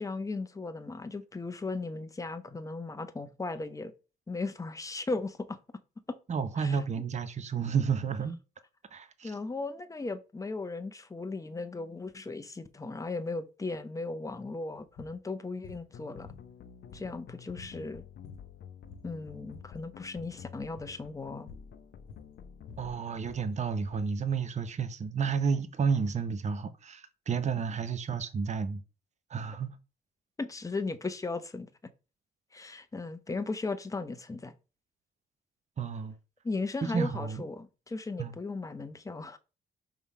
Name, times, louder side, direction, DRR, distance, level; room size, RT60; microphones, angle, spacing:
voice 1, 0.0-3.9 4.3-5.6 6.1-6.2 6.6-6.8 9.2-16.3 16.9-18.0 19.0-21.5 30.4-31.7 32.5-34.5 36.4-39.4, left 3 dB, 15° left, 0.7 m, -37 dB
voice 2, 6.3-8.4 8.9-9.3 22.8-28.8 29.3-29.8 35.8-36.2 36.9-37.5 38.2-38.4, right 6 dB, 35° right, 0.8 m, -31 dB
sound 1, 14.9-15.2 15.6-15.9 16.3-17.3 17.6-17.8 18.1-18.6 18.8-19.8 20.1-20.4 20.8-21.0 21.5-21.7 22.1-24.1, left 4 dB, 85° left, 1.0 m, -51 dB
sound 2, 15.9-22.9, left 8 dB, 60° left, 0.7 m, -49 dB
5.5 x 3.6 x 4.7 m
cardioid pair, 90°, 20 cm